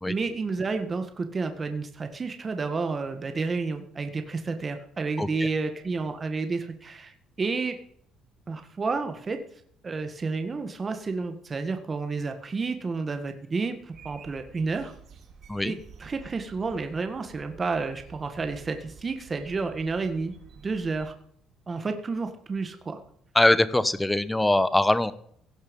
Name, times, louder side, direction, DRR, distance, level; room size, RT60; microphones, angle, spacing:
voice 1, 0.1-7.8 8.5-9.4 9.8-14.9 15.6-20.3 20.6-21.1 21.7-23.0, right 4 dB, 25° right, 7 dB, 1.6 m, -30 dB
voice 2, 5.2-5.5 15.5-15.7 23.3-25.1, left 1 dB, 10° left, 15 dB, 1.0 m, -22 dB
sound 1, 13.9-21.1, right 6 dB, 50° right, 2.8 m, -50 dB
16.5 x 11.5 x 5.4 m, 0.65 s
cardioid pair, 135°, 0 cm